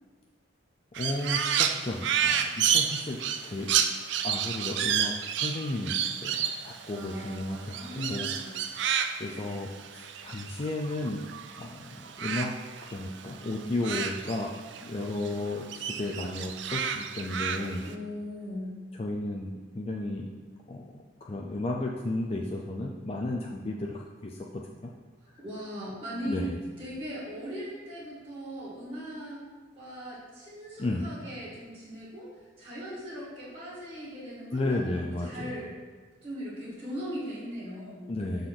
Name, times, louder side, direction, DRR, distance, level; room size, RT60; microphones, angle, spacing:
Crow, 0.9-11.6 11.9-14.9 15.2-17.9, right 8 dB, 65° right, 0.4 m, -30 dB
voice 1, 1.0-3.7 4.2-5.1 5.4-5.9 6.2-8.3 8.7-8.9 9.2-11.2 11.6-12.5 12.8-14.5 14.8-17.9 19.0-20.3 20.7-24.9 26.3-26.6 30.8-31.1 34.5-35.6 38.1-38.5, left 2 dB, 30° left, 0 dB, 0.4 m, -33 dB
voice 2, 6.4-8.5 17.8-18.8 25.4-26.4 26.8-29.4 29.7-32.3 32.6-35.7 36.2-38.1, equal, 30° right, -10 dB, 1.7 m, -39 dB
6.6 x 4.0 x 5.8 m, 1.4 s
head